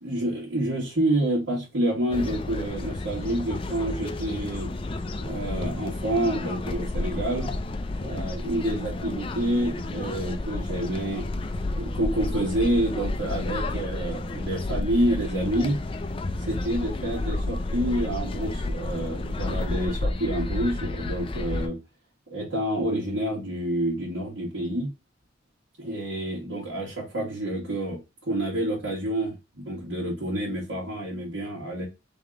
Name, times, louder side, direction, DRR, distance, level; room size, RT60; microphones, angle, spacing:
voice 1, 0.0-4.7 5.2-7.5 8.0-11.3 11.8-15.8 16.5-21.8 22.3-24.9 25.8-28.0 28.3-31.8, right 1 dB, 75° right, 1.9 m, -28 dB
sound 1, 2.1-21.7, left 2 dB, 30° left, 0.4 m, -31 dB
3.7 x 3.4 x 3.7 m
head